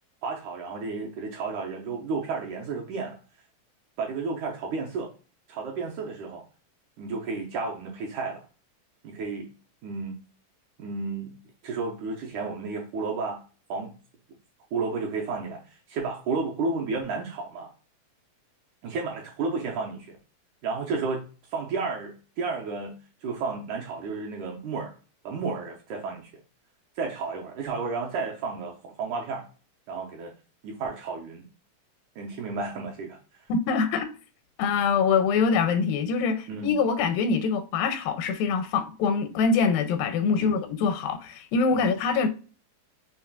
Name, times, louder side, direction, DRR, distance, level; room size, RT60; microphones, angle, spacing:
voice 1, 0.2-3.2 4.0-5.1 5.5-6.4 7.0-8.4 9.0-9.5 9.8-10.2 10.8-11.4 11.6-13.4 13.7-13.9 14.7-17.7 18.8-20.2 20.6-21.2 21.5-22.9 23.2-24.9 25.2-26.3 27.0-29.4 29.9-30.3 30.6-31.4 32.2-33.2 36.5-36.7 40.4-40.6 41.7-41.9, right 4 dB, 75° right, 1.9 m, -32 dB
voice 2, 33.5-34.1 34.6-42.3, left 5 dB, 85° left, 2.2 m, -24 dB
5.8 x 3.1 x 2.3 m
omnidirectional pair, 4.1 m